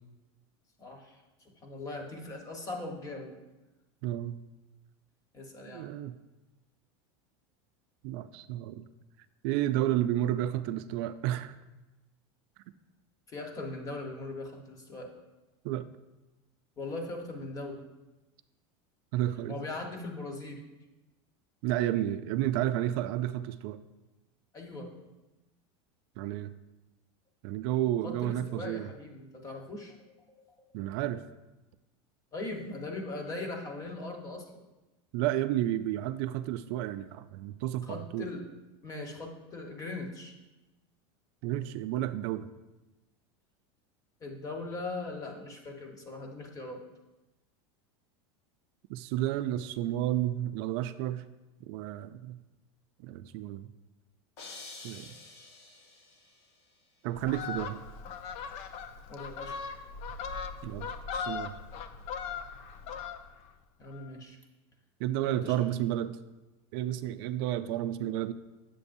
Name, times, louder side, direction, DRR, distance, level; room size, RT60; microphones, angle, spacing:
voice 1, 0.8-3.4 5.3-5.9 13.3-15.1 16.8-17.8 19.5-20.6 24.5-24.9 28.0-30.0 32.3-34.6 37.8-38.4 38.8-40.4 44.2-46.8 59.1-59.5 63.8-64.4 65.3-65.6, left 2 dB, 25° left, 2 dB, 1.2 m, -40 dB
voice 2, 4.0-4.4 5.7-6.1 8.0-8.9 9.4-11.5 15.6-15.9 19.1-19.6 21.6-23.8 26.2-26.5 27.4-28.9 30.7-31.2 35.1-38.2 41.4-42.5 48.9-51.2 51.7-52.4 53.0-53.7 54.8-55.1 57.0-57.8 60.6-61.6 65.0-66.2 66.7-68.3, right 13 dB, 60° right, 11 dB, 0.4 m, -31 dB
sound 1, 54.4-56.5, left 3 dB, 85° left, 1.4 m, -48 dB
Fowl, 57.1-63.5 63.8-64.1, left 6 dB, 50° left, 0.5 m, -39 dB
8.2 x 7.5 x 2.6 m, 1.1 s
supercardioid pair, 135°, 14 cm